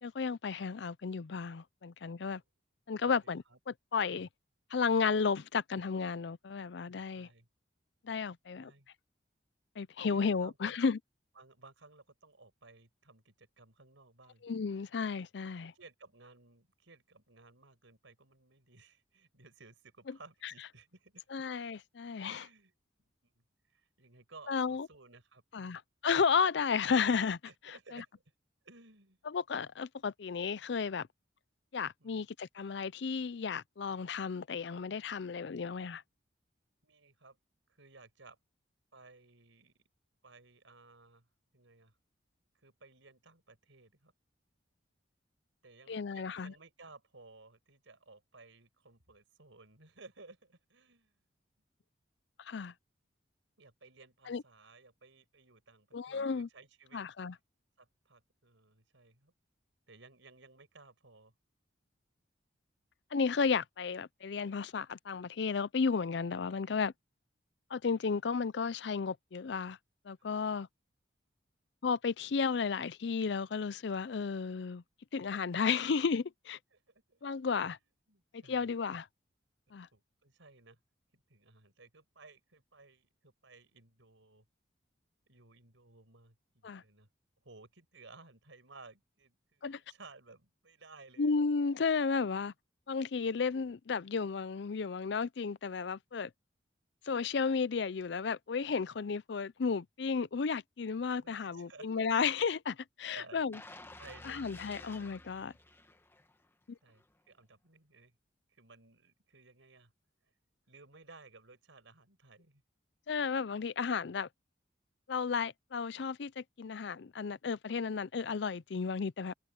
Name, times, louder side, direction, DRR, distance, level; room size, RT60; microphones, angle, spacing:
voice 1, 0.0-2.4 2.9-4.3 4.7-7.3 8.0-8.7 9.8-11.0 14.4-15.7 20.1-20.2 21.3-22.5 24.5-24.9 25.5-27.4 27.9-28.0 29.3-31.1 31.7-36.0 45.9-46.5 52.5-52.7 54.3-54.4 55.9-56.5 56.9-57.3 63.1-66.9 67.7-69.8 70.1-70.7 71.8-74.8 75.1-76.6 77.2-77.8 78.3-79.1 79.7-79.9 86.6-86.8 89.6-89.8 91.2-92.5 92.9-96.3 97.1-103.6 104.2-105.5 106.7-106.8 113.1-114.3 115.1-119.3, left 5 dB, 65° left, 0.5 m, -33 dB
voice 2, 3.0-3.6 7.1-7.5 8.6-8.9 10.0-10.8 11.4-14.4 15.7-21.2 22.2-22.7 23.2-23.4 23.7-25.8 27.4-28.2 28.6-29.2 32.0-32.3 36.8-37.4 37.7-38.4 38.9-39.8 40.2-41.3 41.5-41.9 42.6-44.1 45.6-51.1 53.6-57.0 57.8-59.3 59.9-61.3 70.2-70.5 76.7-76.8 77.1-77.2 78.1-78.7 79.7-80.8 81.1-84.4 85.3-87.1 87.4-91.4 101.1-102.1 103.1-103.5 104.0-104.5 106.8-108.1 108.5-109.9 110.7-112.6, right 3 dB, 90° right, 5.7 m, -58 dB
sound 1, 103.5-106.5 106.9-107.0, left 2 dB, 10° left, 1.3 m, -52 dB
open air
head